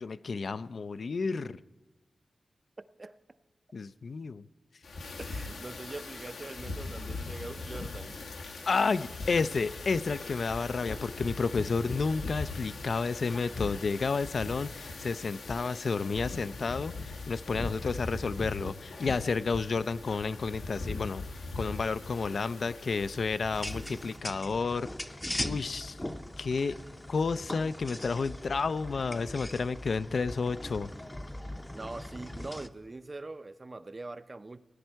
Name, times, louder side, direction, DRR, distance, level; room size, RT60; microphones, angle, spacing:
voice 1, 0.0-1.6 3.7-4.5 8.7-21.2 21.5-24.9 25.4-26.0 26.4-26.7 27.1-30.9, left 4 dB, 60° left, 14 dB, 0.3 m, -31 dB
voice 2, 2.8-3.2 5.2-8.2 31.7-34.6, right 2 dB, 35° right, 13 dB, 0.5 m, -43 dB
sound 1, 4.8-24.2, left 3 dB, 90° left, 1.1 m, -40 dB
sound 2, 23.5-32.7, left 1 dB, 15° left, 0.6 m, -40 dB
18.0 x 9.5 x 4.5 m, 1.2 s
wide cardioid pair, 75°, 0 cm